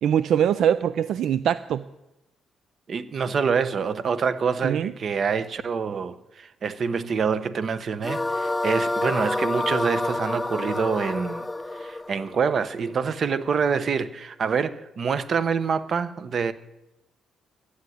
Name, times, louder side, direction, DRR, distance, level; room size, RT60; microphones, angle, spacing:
voice 1, 0.0-1.8 4.6-4.9, right 9 dB, 75° right, 0.4 m, -22 dB
voice 2, 2.9-11.5 11.8-16.5, right 6 dB, 50° right, 1.0 m, -26 dB
sound 1, 8.0-13.2, left 2 dB, 15° left, 0.4 m, -28 dB
13.0 x 8.2 x 9.4 m
cardioid pair, 90°, 0 cm